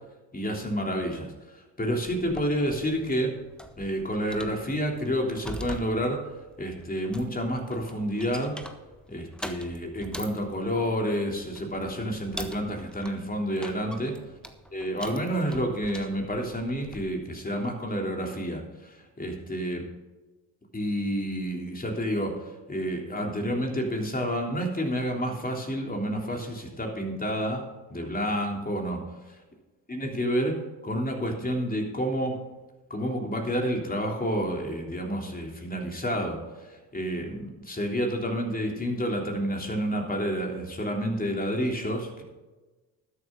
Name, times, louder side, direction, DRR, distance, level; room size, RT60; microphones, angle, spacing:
voice 1, 0.3-3.3 3.8-6.2 6.6-8.5 9.1-14.1 14.7-19.8 20.7-22.3 22.7-27.6 27.9-29.0 29.9-32.3 32.9-42.2, equal, 20° left, 1 dB, 3.3 m, -29 dB
sound 1, 2.1-17.1, equal, ahead, 1.4 m, -44 dB
13.0 x 9.7 x 3.9 m, 1.2 s
hypercardioid pair, 60°, 41 cm